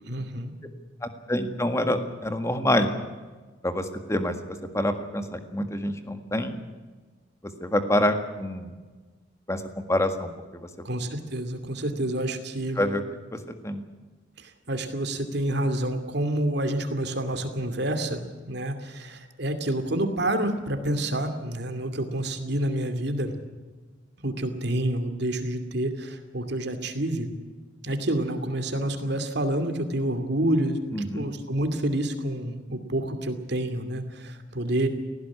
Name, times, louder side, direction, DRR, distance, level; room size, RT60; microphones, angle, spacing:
voice 1, 0.0-0.5 10.8-12.8 14.4-23.3 24.2-27.3 27.8-30.8 31.1-34.9, right 1 dB, 60° right, 8 dB, 2.6 m, -28 dB
voice 2, 1.0-2.9 3.6-6.6 7.6-8.7 9.5-10.9 12.8-13.0 13.3-13.8 30.9-31.3, left 1 dB, 15° left, 8 dB, 1.7 m, -27 dB
18.5 x 16.5 x 9.8 m, 1.3 s
head